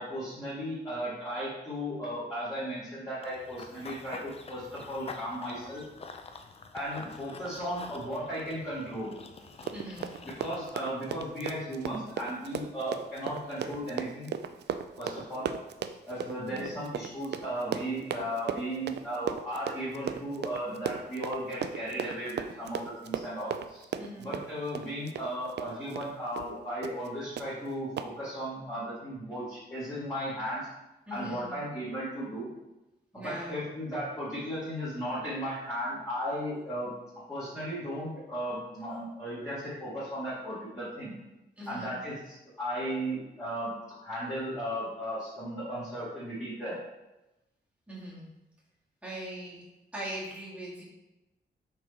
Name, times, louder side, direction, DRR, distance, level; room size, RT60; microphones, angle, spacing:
voice 1, 0.0-5.8 6.7-9.1 10.2-14.3 15.0-15.5 16.1-23.9 24.2-30.7 31.1-32.5 33.1-36.9 37.3-41.1 41.7-43.7 44.0-46.8, equal, 15° left, -12 dB, 2.1 m, -35 dB
Run / Bird vocalization bird call bird song, 3.2-10.7, left 4 dB, 35° left, 0.5 m, -47 dB
Run, 9.5-26.1 26.4-26.5 26.8-27.1 27.4-27.5 28.0-28.1, right 8 dB, 70° right, 0.4 m, -36 dB
voice 2, 9.7-10.2 16.5-16.7 24.0-24.3 31.1-31.5 33.1-33.6 41.6-41.9 47.9-48.3 49.0-49.6 49.9-50.8, right 1 dB, 5° right, -7 dB, 2.0 m, -40 dB
6.0 x 4.6 x 4.3 m, 0.99 s
wide cardioid pair, 170°, 18 cm